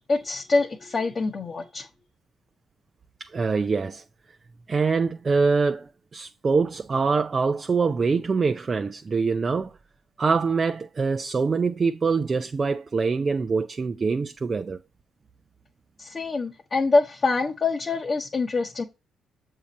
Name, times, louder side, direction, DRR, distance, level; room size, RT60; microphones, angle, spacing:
voice 1, 0.1-1.9 16.0-18.8, left 3 dB, 35° left, 1.0 m, -25 dB
voice 2, 3.2-4.0 4.7-9.7 10.2-14.8, right 4 dB, 35° right, 0.5 m, -24 dB
7.2 x 2.8 x 5.1 m
cardioid pair, 90°, 0 cm